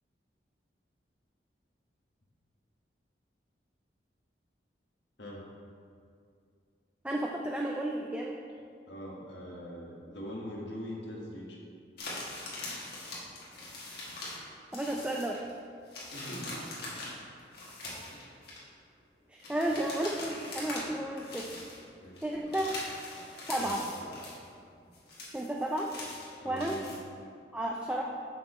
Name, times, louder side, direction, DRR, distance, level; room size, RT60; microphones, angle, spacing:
voice 1, 7.0-8.4 14.7-15.4 19.3-21.5 22.2-22.7 23.5-23.8 25.3-25.9 26.4-26.8 27.5-28.0, right 1 dB, 5° right, -1 dB, 0.3 m, -32 dB
voice 2, 8.9-11.6 16.1-17.1 18.1-18.4 19.6-19.8 22.0-22.6 23.6-24.3 26.4-26.9, equal, 80° left, -3 dB, 1.5 m, -43 dB
sound 1, 12.0-14.5 14.7-15.5 15.9-18.6 19.4-20.9 21.2-21.8 22.2-24.5 24.8-27.0, left 2 dB, 60° left, 1.6 m, -42 dB
6.2 x 5.9 x 4.2 m, 2.3 s
head